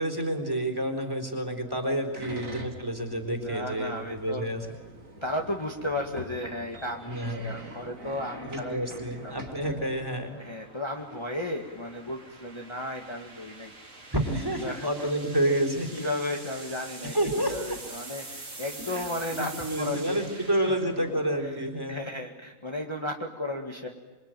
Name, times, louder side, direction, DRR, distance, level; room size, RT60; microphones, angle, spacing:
voice 1, 0.0-4.6 7.1-7.5 8.4-10.4 14.1-16.1 17.0-17.8 18.9-22.1, right 1 dB, 15° right, 6 dB, 4.0 m, -29 dB
sound 1, 1.6-9.9, right 2 dB, 80° right, 3.3 m, -45 dB
voice 2, 2.2-2.5 3.4-4.4 5.2-9.5 10.4-13.7 14.6-14.9 15.9-17.2 17.4-20.8 21.4-21.6 21.9-23.9, left 1 dB, 20° left, 1 dB, 2.0 m, -34 dB
sound 2, 6.1-21.9, right 2 dB, 65° right, 3.7 m, -46 dB
27.0 x 24.0 x 9.2 m, 1.3 s
omnidirectional pair, 1.4 m